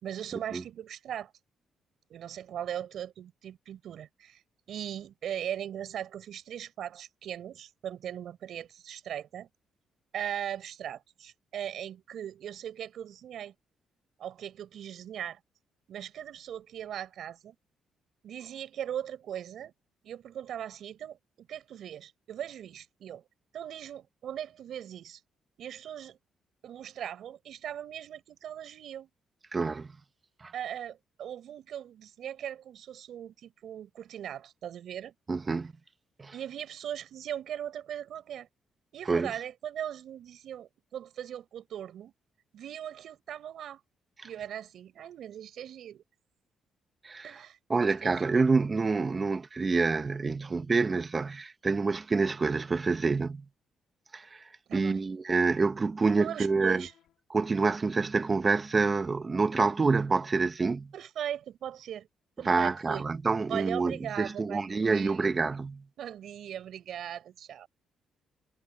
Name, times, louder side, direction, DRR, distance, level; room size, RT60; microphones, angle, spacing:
voice 1, 0.0-1.3 2.1-4.4 4.7-9.5 10.1-13.5 14.2-15.4 15.9-17.5 18.2-19.7 20.0-23.2 23.5-25.2 25.6-26.2 26.6-29.1 30.5-35.1 36.3-38.5 38.9-42.1 42.5-43.8 44.2-46.0 47.2-48.3 54.7-55.4 56.2-56.9 60.9-62.1 62.4-63.0 63.5-65.2 66.0-67.7, right 10 dB, 70° right, 4.9 m, -39 dB
voice 2, 29.5-29.9 30.4-30.5 35.3-35.7 36.2-36.3 39.1-39.3 47.0-47.3 47.7-53.4 54.1-54.4 54.7-56.8 57.3-60.9 62.4-65.8, right 4 dB, 30° right, 1.4 m, -27 dB
sound 1, 56.7-57.2, left 11 dB, 80° left, 3.3 m, -58 dB
cardioid pair, 90°, 0 cm